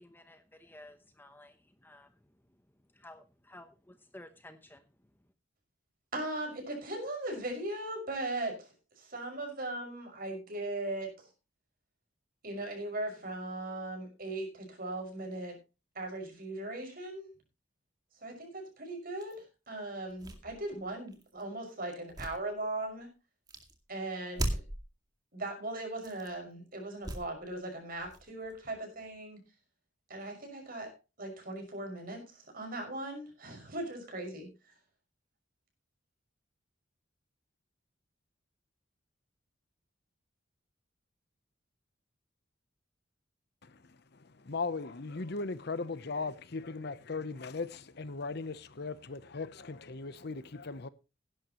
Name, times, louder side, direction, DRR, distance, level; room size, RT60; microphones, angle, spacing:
voice 1, 0.0-1.6 1.8-2.1 3.0-4.8, left 1 dB, 10° left, 0.9 m, -53 dB
voice 2, 6.1-11.1 12.4-15.6 15.9-17.3 18.2-23.1 23.9-24.6 25.3-29.4 30.1-30.9 31.2-34.5, right 2 dB, 50° right, 5.9 m, -39 dB
sound 1, 19.2-19.4 20.0-21.4 21.9-23.0 23.5-23.8 24.3-24.9 25.9-26.4 27.0-27.6 27.9-29.2, right 1 dB, 20° right, 2.2 m, -39 dB
voice 3, 44.1-50.9, left 4 dB, 55° left, 0.8 m, -38 dB
17.5 x 11.0 x 3.0 m
head